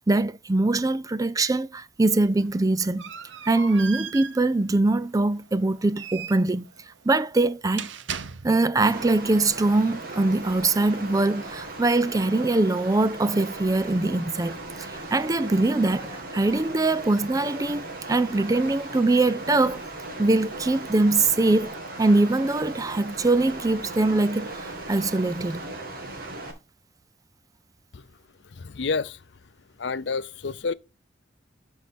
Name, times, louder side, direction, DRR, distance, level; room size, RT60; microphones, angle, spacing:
voice 1, 0.1-3.0 3.5-6.6 7.0-7.9 8.4-19.8 20.2-25.6, right 2 dB, 20° right, 0.4 m, -23 dB
sound 1, 2.2-8.9, right 7 dB, 85° right, 0.8 m, -39 dB
sound 2, 8.8-26.5, right 2 dB, 55° right, 2.5 m, -37 dB
voice 2, 28.4-29.2 29.8-30.7, left 4 dB, 70° left, 0.6 m, -29 dB
12.0 x 4.7 x 4.2 m
head